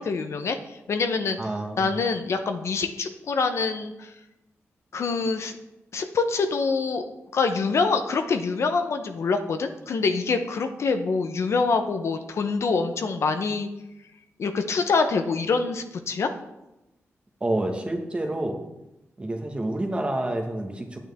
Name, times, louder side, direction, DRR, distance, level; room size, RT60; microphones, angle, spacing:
voice 1, 0.0-1.4 1.8-4.1 4.9-5.5 5.9-7.0 7.3-13.7 14.4-16.3, left 4 dB, 65° left, 7 dB, 0.7 m, -25 dB
voice 2, 1.4-1.9 17.4-18.6 19.2-21.0, right 1 dB, 20° right, 3 dB, 1.2 m, -28 dB
8.8 x 8.8 x 3.5 m, 0.95 s
wide cardioid pair, 110°, 5 cm